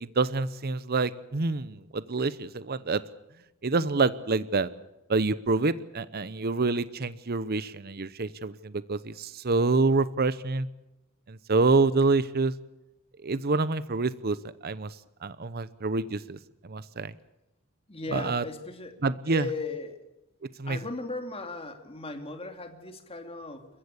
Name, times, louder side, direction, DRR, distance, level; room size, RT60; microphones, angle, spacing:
voice 1, 0.0-3.0 3.6-4.7 5.1-10.7 11.3-12.5 13.2-14.4 14.6-14.9 15.2-16.4 16.6-17.1 18.1-18.4 19.0-19.5 20.6-20.8, right 3 dB, 45° right, 16 dB, 0.8 m, -27 dB
voice 2, 17.9-19.0 19.3-20.0 20.7-23.7, left 3 dB, 25° left, 6 dB, 2.7 m, -37 dB
28.5 x 14.5 x 8.4 m, 0.93 s
head